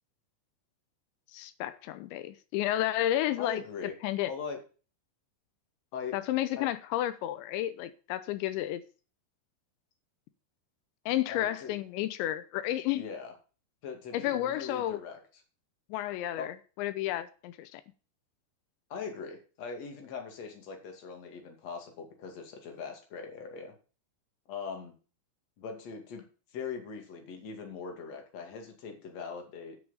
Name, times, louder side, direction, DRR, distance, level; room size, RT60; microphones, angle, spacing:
voice 1, 1.3-3.6 4.0-4.3 6.1-8.8 11.1-13.1 14.1-15.0 15.9-17.8, left 13 dB, 90° left, 3.1 m, -31 dB
voice 2, 3.4-3.9 4.3-4.6 5.9-6.1 6.6-6.7 11.3-11.7 13.0-13.3 13.8-15.2 16.4-16.5 18.9-23.7 24.5-24.9 25.6-26.2 26.5-29.8, left 5 dB, 45° left, 3.0 m, -41 dB
9.7 x 6.3 x 7.4 m
omnidirectional pair, 5.1 m